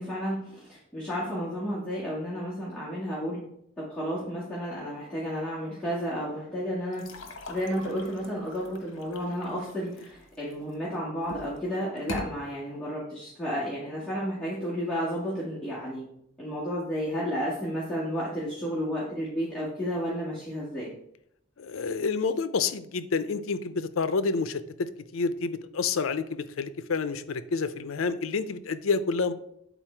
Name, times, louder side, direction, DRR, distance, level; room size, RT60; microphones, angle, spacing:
voice 1, 0.0-3.4 3.8-16.0 16.4-20.9, equal, 5° left, -10 dB, 1.9 m, -32 dB
sound 1, 6.9-10.7 11.2-11.6 12.0-12.3, left 2 dB, 65° left, 1.1 m, -41 dB
voice 2, 21.6-29.3, left 4 dB, 80° left, 13 dB, 0.5 m, -29 dB
9.1 x 4.0 x 4.4 m, 0.74 s
head